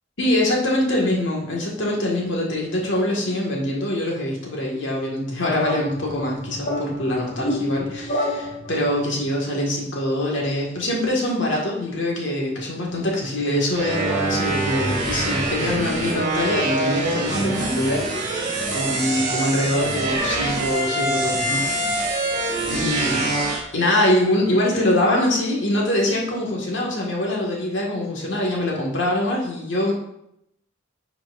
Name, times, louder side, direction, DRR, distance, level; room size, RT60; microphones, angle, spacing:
voice 1, 0.2-22.3 22.7-23.3 23.7-29.9, left 1 dB, 70° left, -2 dB, 1.8 m, -24 dB
sound 1, 5.6-9.1, left 1 dB, 50° left, 2.1 m, -29 dB
sound 2, 13.7-23.6, right 2 dB, 40° right, 1.9 m, -24 dB
10.0 x 6.0 x 2.6 m, 0.78 s
head